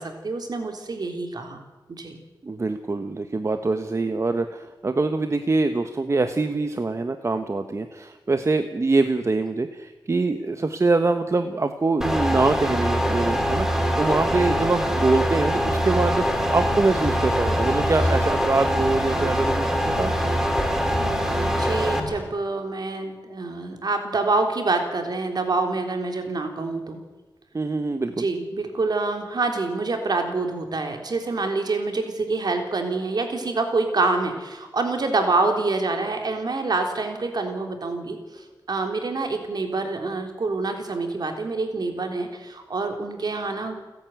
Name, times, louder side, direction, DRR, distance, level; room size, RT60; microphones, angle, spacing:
voice 1, 0.0-1.6 2.0-2.2 14.1-14.3 21.0-27.0 28.2-43.8, right 3 dB, 60° right, 4 dB, 3.6 m, -26 dB
voice 2, 2.4-20.1 27.5-28.3, right 3 dB, 35° right, 8 dB, 1.1 m, -24 dB
sound 1, 12.0-22.0, equal, 5° right, 3.0 m, -23 dB
sound 2, 15.3-22.3, left 1 dB, 25° left, 5.6 m, -35 dB
29.5 x 11.0 x 9.3 m, 1.2 s
wide cardioid pair, 110°, 8 cm